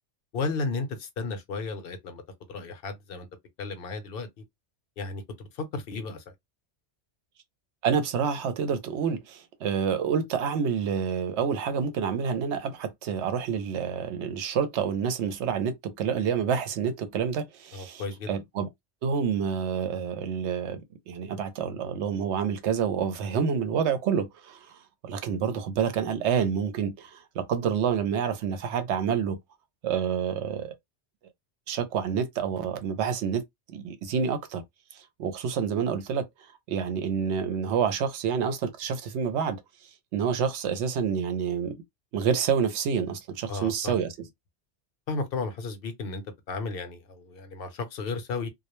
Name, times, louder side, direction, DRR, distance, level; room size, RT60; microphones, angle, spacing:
voice 1, 0.3-2.2 2.5-3.3 3.6-4.3 5.0-6.2 17.7-18.3 43.5-44.0 45.1-48.5, left 3 dB, 60° left, 0.7 m, -34 dB
voice 2, 7.8-18.0 18.3-18.7 19.0-20.8 21.1-24.7 25.0-29.4 29.8-30.7 31.7-33.4 33.7-34.6 35.2-36.3 36.7-39.6 40.1-41.8 42.1-44.1, right 7 dB, 75° right, 0.8 m, -28 dB
2.2 x 2.1 x 2.9 m
omnidirectional pair, 1.2 m